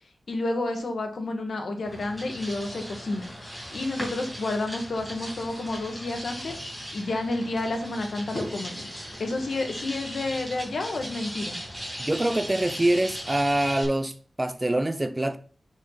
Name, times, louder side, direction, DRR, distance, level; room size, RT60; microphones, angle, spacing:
voice 1, 0.3-3.3 3.7-6.6 6.9-11.6, left 2 dB, 70° left, 1.7 m, -30 dB
sound 1, 1.8-13.8, equal, 15° left, 4.8 m, -38 dB
voice 2, 12.0-15.4, right 1 dB, 20° right, 0.6 m, -25 dB
10.0 x 5.1 x 4.0 m
wide cardioid pair, 130°, 0 cm